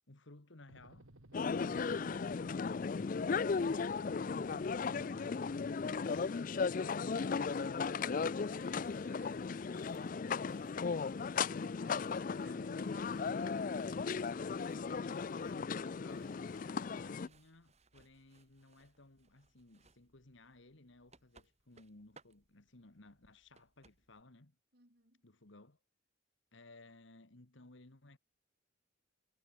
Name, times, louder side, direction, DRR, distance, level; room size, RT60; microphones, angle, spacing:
voice 1, 0.1-1.1 12.4-13.7 14.9-24.6 25.2-25.8 26.5-28.2, left 2 dB, 65° left, 1.8 m, -59 dB
sound 1, 0.7-5.9, right 1 dB, 85° right, 2.7 m, -58 dB
sound 2, 1.3-17.3, left 5 dB, 40° left, 0.4 m, -36 dB
voice 2, 6.8-7.7 8.0-10.8 11.4-13.6 14.1-14.7 24.7-25.2, right 3 dB, 50° right, 5.5 m, -65 dB
sound 3, 8.3-24.2, right 3 dB, 30° right, 3.1 m, -69 dB
head